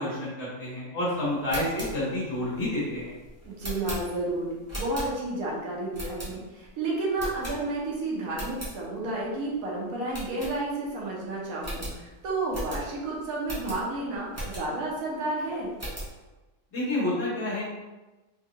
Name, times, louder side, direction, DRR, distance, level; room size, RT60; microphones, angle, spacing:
voice 1, 0.0-3.1 16.7-17.6, left 1 dB, 45° left, -9 dB, 1.5 m, -29 dB
sound 1, 1.3-5.5 5.9-6.7 7.1-7.9 8.2-8.7 9.2-9.3 9.5-9.7 10.1-11.0 11.2-11.3 11.6-14.9 15.3-16.2, right 1 dB, 15° right, 0.6 m, -38 dB
voice 2, 3.5-4.5 4.7-15.7, right 2 dB, 65° right, -4 dB, 1.1 m, -31 dB
3.5 x 2.2 x 2.8 m, 1.1 s
omnidirectional pair, 1.6 m